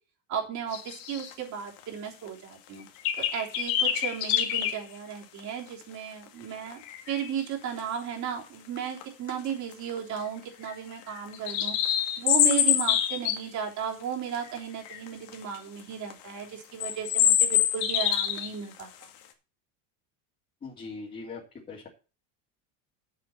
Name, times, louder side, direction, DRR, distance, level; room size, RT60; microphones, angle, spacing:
voice 1, 0.3-2.8 3.3-6.8 7.1-11.8 12.2-19.1, right 7 dB, 45° right, 0 dB, 3.5 m, -35 dB
Birdsong In The Rain, 0.7-1.3 1.8-1.9 2.3-2.4 3.0-4.8 5.4-5.5 6.7-7.3 8.8-9.0 9.3-9.4 9.7-10.2 10.6-13.4 14.3-14.6 14.9-15.6 16.1-16.2 16.8-18.5 18.8-19.0, left 10 dB, 75° left, 2.1 m, -26 dB
voice 2, 20.6-21.4 21.7-21.9, left 4 dB, 20° left, -4 dB, 2.8 m, -40 dB
8.4 x 7.9 x 5.6 m, 0.32 s
cardioid pair, 145°, 40 cm